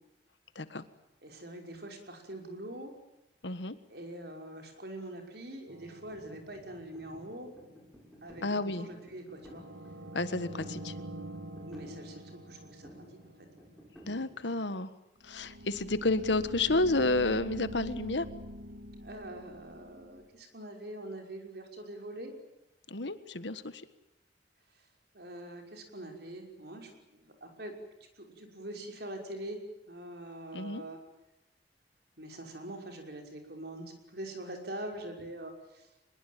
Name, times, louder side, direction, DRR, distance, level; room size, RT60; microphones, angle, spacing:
voice 1, 1.2-2.9 3.9-7.5 8.2-9.6 11.5-13.0 19.0-22.3 25.1-27.8 28.2-31.0 32.2-35.9, right 1 dB, 60° right, 3 dB, 5.7 m, -44 dB
voice 2, 3.4-3.7 8.4-8.9 10.1-10.9 14.1-14.9 15.2-18.3 22.9-23.8 30.5-30.8, left 2 dB, 80° left, 13 dB, 1.6 m, -30 dB
sound 1, 5.7-7.1 9.4-13.8 15.2-20.2, equal, 80° right, 2.6 m, -45 dB
sound 2, 6.1-14.6, equal, ahead, 7.0 m, -54 dB
24.0 x 22.0 x 9.3 m, 0.91 s
head